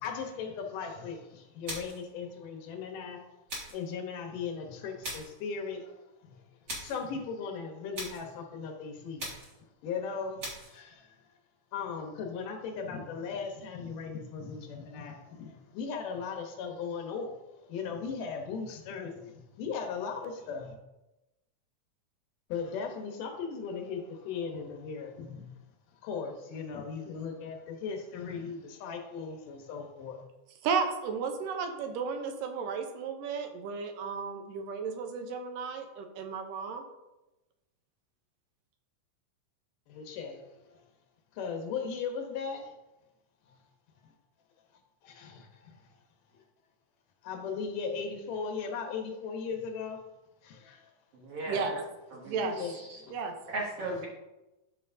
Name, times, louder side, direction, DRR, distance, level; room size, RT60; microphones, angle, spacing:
voice 1, 0.0-3.4 3.7-9.3 9.6-11.2 11.7-20.8 22.5-25.6 26.0-30.3 39.9-40.9 41.3-42.8 43.5-43.6 44.0-44.1 45.0-46.0 46.3-46.4 47.2-50.0 50.4-50.9 51.5-51.6 52.4-53.1, left 5 dB, 75° left, 3 dB, 2.5 m, -38 dB
sound 1, 1.7-2.1 3.5-3.9 5.0-5.4 6.7-7.0 7.9-8.3 9.2-9.6 10.4-10.8, right 1 dB, 40° right, 1.9 m, -40 dB
voice 2, 30.6-36.8 51.5-51.8 52.3-52.6 53.1-53.3, right 5 dB, 80° right, 6 dB, 2.4 m, -33 dB
voice 3, 51.1-51.8 52.1-53.0 53.5-54.1, right 2 dB, 60° right, -2 dB, 1.7 m, -37 dB
11.5 x 5.7 x 2.6 m, 1.0 s
omnidirectional pair, 3.8 m